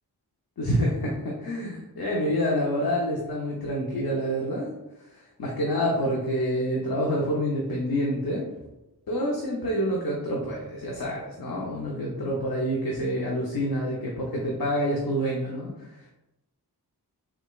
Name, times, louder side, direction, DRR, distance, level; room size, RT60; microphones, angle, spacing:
voice 1, 0.6-4.7 5.1-8.4 9.1-15.7, equal, 60° left, -4 dB, 0.7 m, -27 dB
4.9 x 2.3 x 2.3 m, 0.94 s
wide cardioid pair, 55°, 39 cm